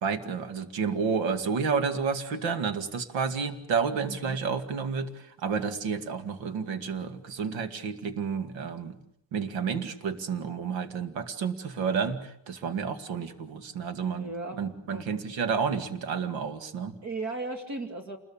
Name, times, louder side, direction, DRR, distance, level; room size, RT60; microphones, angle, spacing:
voice 1, 0.0-9.0 9.3-14.3 14.6-16.9, right 6 dB, 85° right, 11 dB, 2.4 m, -30 dB
voice 2, 14.2-14.6 14.9-15.2 17.0-18.2, right 3 dB, 40° right, 7 dB, 2.3 m, -36 dB
28.5 x 21.5 x 8.8 m, 0.78 s
cardioid pair, 180°, 44 cm